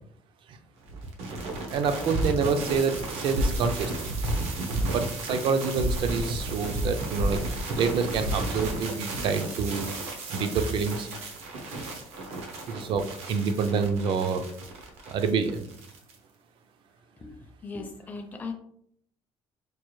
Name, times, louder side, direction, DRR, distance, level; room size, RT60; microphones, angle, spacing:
sound 1, 0.9-16.2, right 1 dB, 75° right, 0.8 m, -32 dB
voice 1, 1.7-4.1 4.7-7.4 7.8-9.9 10.3-11.1 12.7-14.4 15.1-15.7, right 5 dB, 50° right, 8 dB, 0.4 m, -27 dB
voice 2, 17.2-18.5, left 4 dB, 15° left, 3 dB, 0.4 m, -38 dB
4.6 x 2.4 x 3.0 m, 0.68 s
cardioid pair, 165°, 11 cm